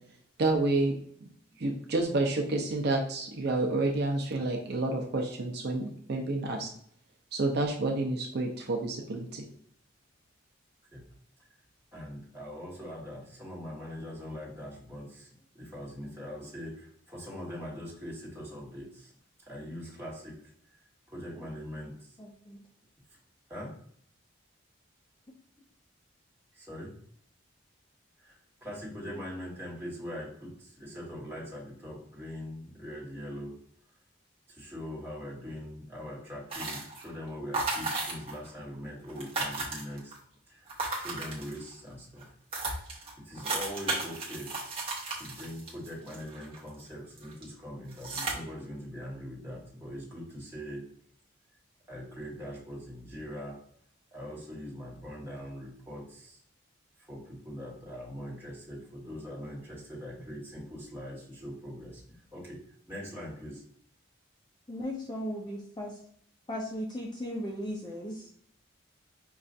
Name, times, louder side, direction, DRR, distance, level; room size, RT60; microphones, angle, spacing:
voice 1, 0.4-0.9 1.6-6.7 7.3-9.4, right 2 dB, 50° right, 1 dB, 0.5 m, -29 dB
voice 2, 11.9-15.3 15.5-19.1 19.5-20.4 20.7-20.8 21.1-22.2 23.5-23.8 26.5-27.0 28.2-33.6 34.5-40.2 40.5-42.3 43.2-44.5 45.2-50.9 51.9-53.6 54.1-56.4 57.0-62.6 62.9-63.6, equal, 10° right, -6 dB, 1.2 m, -42 dB
voice 3, 22.2-22.6 64.7-66.0 66.5-68.3, equal, 20° left, -1 dB, 0.4 m, -37 dB
sound 1, 36.5-37.1 37.5-38.5 38.7-38.8 39.0-40.2 40.7-41.8 42.2-42.3 42.5-46.8 47.2-47.4 47.9-48.3, right 3 dB, 30° right, 0.8 m, -34 dB
5.3 x 2.4 x 2.5 m, 0.63 s
head